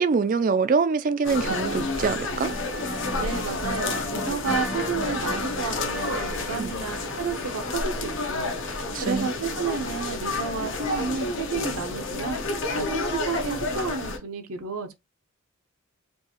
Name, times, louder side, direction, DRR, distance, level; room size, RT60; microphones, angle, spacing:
voice 1, 0.0-2.5 6.6-6.7 8.9-9.3, right 5 dB, 35° right, 0.3 m, -24 dB
sound 1, 1.2-14.2, left 2 dB, 55° left, 0.8 m, -29 dB
voice 2, 3.2-8.5 9.0-12.4 12.7-14.9, right 5 dB, 75° right, 0.7 m, -31 dB
4.5 x 2.5 x 2.9 m
head